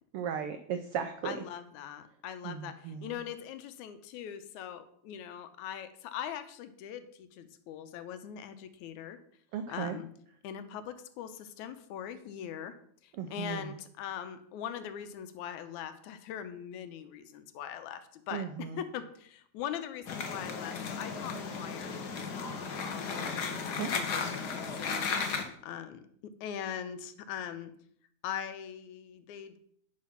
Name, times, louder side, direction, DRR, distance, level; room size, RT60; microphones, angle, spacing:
voice 1, 0.1-1.4 2.4-3.1 9.5-10.0 13.2-13.6 18.3-18.8 23.6-23.9, right 8 dB, 85° right, 8 dB, 1.2 m, -36 dB
voice 2, 1.2-9.2 9.7-10.1 10.4-12.8 13.0-21.9 22.3-25.1 25.6-27.7 28.2-29.6, left 9 dB, 85° left, 10 dB, 2.2 m, -41 dB
sound 1, 20.1-25.4, left 5 dB, 60° left, 1.0 m, -35 dB
10.5 x 4.9 x 5.7 m, 0.65 s
omnidirectional pair, 3.3 m